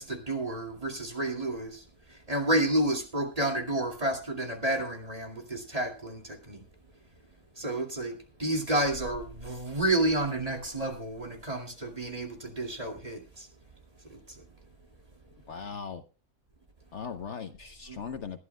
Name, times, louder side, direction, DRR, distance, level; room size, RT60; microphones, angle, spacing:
voice 1, 0.0-6.6 7.6-13.5 14.0-14.4 17.9-18.0, right 1 dB, 25° right, 2.5 m, -30 dB
voice 2, 15.5-16.0 16.9-18.4, left 6 dB, 55° left, 1.1 m, -38 dB
20.5 x 12.0 x 2.2 m
omnidirectional pair, 1.5 m